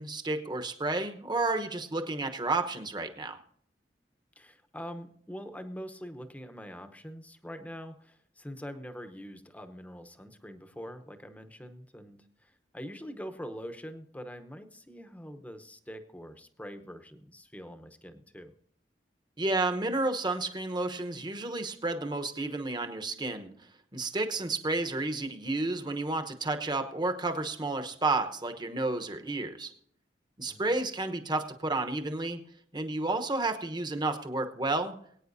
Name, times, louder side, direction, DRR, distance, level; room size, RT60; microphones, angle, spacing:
voice 1, 0.0-3.4 19.4-23.5 23.9-29.7 30.4-32.4 32.7-35.0, right 2 dB, 25° right, 7 dB, 1.0 m, -31 dB
voice 2, 4.4-18.5 30.5-30.7, equal, 10° left, 8 dB, 0.9 m, -44 dB
22.0 x 9.1 x 2.7 m, 0.64 s
head